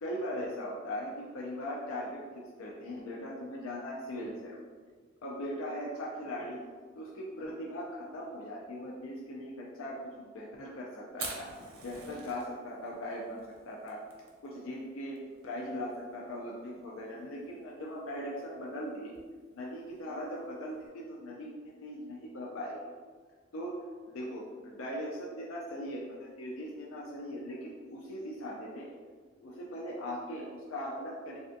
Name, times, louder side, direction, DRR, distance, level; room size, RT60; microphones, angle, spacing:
voice 1, 0.0-4.6 5.2-6.6 7.0-11.5 11.8-13.4 13.6-14.0 14.4-19.1 19.5-22.8 23.5-29.0 29.4-31.4, equal, 70° left, -3 dB, 0.4 m, -39 dB
Fire, 11.1-20.9, right 3 dB, 75° right, 0.6 m, -49 dB
3.3 x 2.3 x 2.5 m, 1.5 s
head